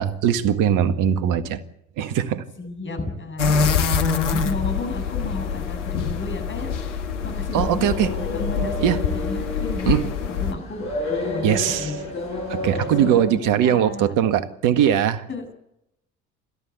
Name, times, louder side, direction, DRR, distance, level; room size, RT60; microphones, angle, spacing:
voice 1, 0.0-1.6 2.0-2.4 7.5-8.1 8.8-9.0 9.9-10.0 11.4-11.9 12.5-15.2, right 9 dB, 60° right, 12 dB, 1.8 m, -20 dB
voice 2, 2.6-7.9 8.2-12.0 12.8-14.1 15.3-15.5, left 2 dB, 35° left, 4 dB, 7.9 m, -33 dB
sound 1, 3.4-10.5, left 6 dB, 85° left, 1.6 m, -25 dB
sound 2, 7.8-13.2, left 2 dB, 70° left, 7.4 m, -30 dB
28.5 x 14.0 x 8.3 m, 0.82 s
hypercardioid pair, 60°, 35 cm